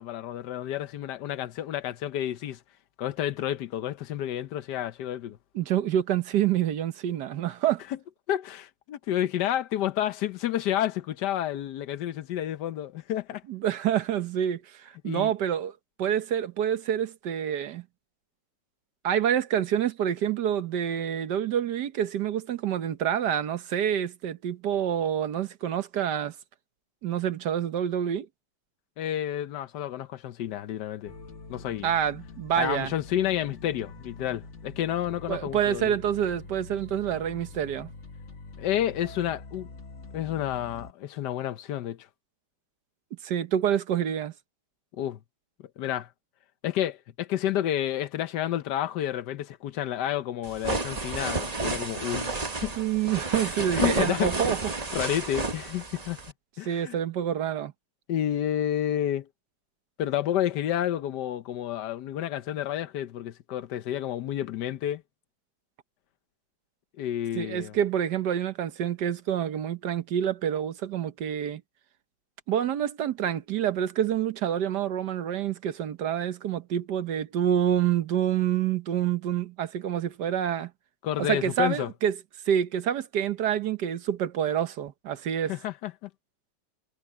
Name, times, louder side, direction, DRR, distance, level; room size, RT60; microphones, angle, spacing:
voice 1, 0.0-2.6 3.0-5.4 8.3-13.4 15.0-15.3 29.0-31.1 31.5-31.9 32.6-35.9 38.6-39.7 40.1-42.1 45.0-45.2 45.8-46.1 46.6-52.3 52.6-52.7 53.4-54.5 54.9-56.2 56.6-57.0 58.1-59.3 60.0-65.0 67.0-67.7 81.0-81.9 85.5-86.1, left 11 dB, 70° left, 1.4 m, -30 dB
voice 2, 5.5-7.8 13.5-15.7 16.0-17.8 19.0-26.3 27.0-28.3 31.8-32.9 35.3-37.9 43.2-44.3 52.8-54.6 56.6-57.7 67.3-71.6 72.5-80.7 81.2-82.1 82.5-85.5, right 9 dB, 70° right, 1.6 m, -27 dB
sound 1, 31.1-40.9, left 3 dB, 45° left, 1.7 m, -45 dB
sound 2, 50.4-56.3, right 3 dB, 25° right, 1.2 m, -31 dB
omnidirectional pair, 1.9 m